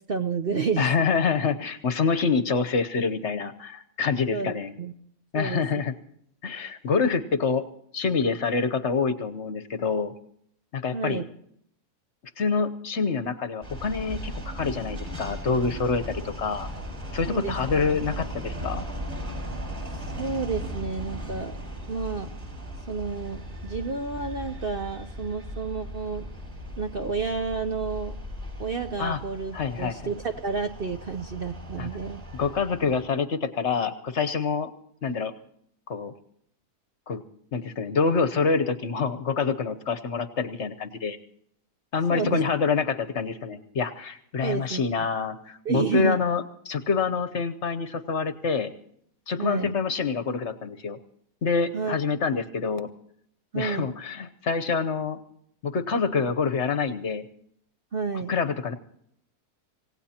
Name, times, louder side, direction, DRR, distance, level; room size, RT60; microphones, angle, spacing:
voice 1, 0.1-1.1 4.3-4.9 5.3-5.6 10.9-11.3 17.3-18.0 20.2-21.6 21.9-22.3 22.9-26.2 26.8-28.1 28.6-32.2 42.1-42.4 44.4-44.8 45.6-46.3 49.4-49.8 51.7-52.0 53.5-54.0 57.9-58.4, right 5 dB, 50° right, 6 dB, 0.8 m, -30 dB
voice 2, 0.8-4.7 5.3-5.9 6.4-7.6 7.9-10.1 10.7-11.2 12.4-16.7 17.1-18.9 29.0-29.2 29.5-30.0 31.8-31.9 32.4-34.7 35.0-35.3 35.9-36.1 37.1-37.2 37.5-41.2 41.9-48.7 49.3-51.0 51.4-52.9 53.5-55.2 55.6-57.2 58.3-58.7, left 5 dB, 50° left, 10 dB, 1.1 m, -26 dB
sound 1, 13.6-33.1, equal, 30° right, 5.7 m, -37 dB
26.5 x 17.0 x 2.9 m, 0.68 s
omnidirectional pair, 1.6 m